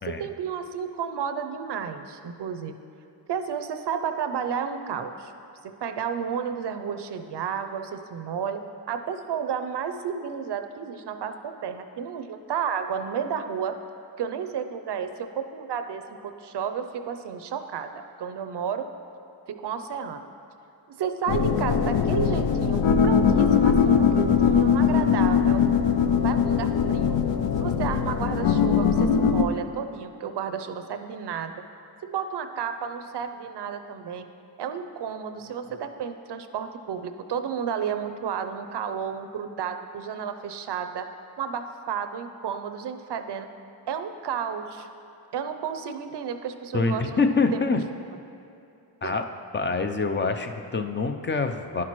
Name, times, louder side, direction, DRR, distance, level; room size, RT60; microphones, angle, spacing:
voice 1, 0.1-2.8 3.3-5.3 5.6-13.8 14.2-18.9 19.5-20.3 20.9-25.6 26.2-27.2 27.6-31.6 32.0-34.3 34.6-41.1 41.4-43.5 43.9-44.9 45.3-47.2 47.5-47.6 49.0-49.1, right 7 dB, 60° right, 8 dB, 0.6 m, -32 dB
sound 1, 21.3-29.4, left 7 dB, 70° left, 0.6 m, -21 dB
voice 2, 46.7-47.8 49.0-49.2 49.5-51.8, left 4 dB, 25° left, 6 dB, 0.5 m, -25 dB
10.5 x 5.9 x 3.1 m, 2.7 s
cardioid pair, 50°, 46 cm